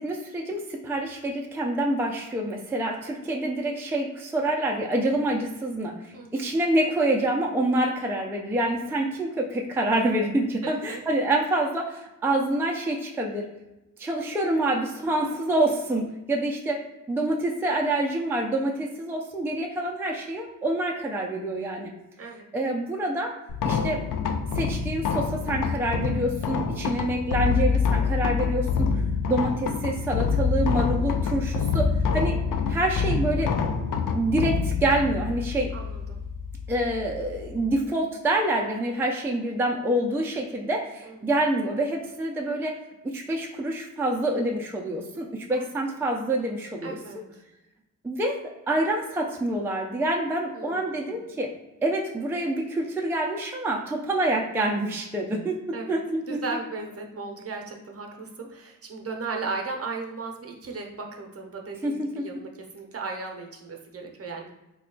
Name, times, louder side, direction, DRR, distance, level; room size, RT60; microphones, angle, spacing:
voice 1, 0.0-13.4 14.0-16.8 17.1-21.9 22.5-23.3 23.6-24.0 24.5-32.3 32.7-33.5 34.1-35.7 36.7-42.8 43.0-47.0 48.0-48.4 48.7-51.5 51.8-55.6 55.9-56.4 61.8-62.2, right 1 dB, 5° right, 0 dB, 0.4 m, -27 dB
voice 2, 6.1-6.5 10.6-11.0 22.2-22.5 28.5-29.1 35.7-36.2 41.0-41.3 45.5-45.8 46.8-47.3 50.5-51.2 55.7-56.0 56.3-64.5, right 4 dB, 45° right, 1 dB, 0.7 m, -36 dB
sound 1, 23.5-37.8, left 5 dB, 80° left, 0.5 m, -26 dB
3.2 x 2.3 x 3.7 m, 0.97 s
wide cardioid pair, 110°, 32 cm